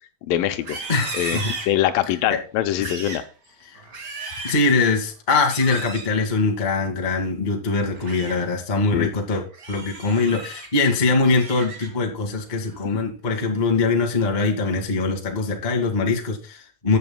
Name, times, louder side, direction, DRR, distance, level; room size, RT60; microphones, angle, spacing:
voice 1, 0.3-0.8 1.1-1.4 1.7-3.2 8.9-9.1 12.9-13.0, left 12 dB, 80° left, 10 dB, 2.3 m, -23 dB
Livestock farm animals working animals, 0.5-2.2 2.7-3.3 3.7-4.7 5.4-6.1 7.8-8.4 8.8-9.1 9.5-10.7 11.1-12.1 12.5-12.9 13.3-13.7, right 3 dB, 45° right, 1.2 m, -36 dB
voice 2, 0.9-1.5 2.8-2.9 3.7-3.8 4.4-17.0, left 3 dB, 50° left, 2 dB, 0.5 m, -22 dB
14.5 x 8.1 x 2.2 m, 0.36 s
omnidirectional pair, 4.4 m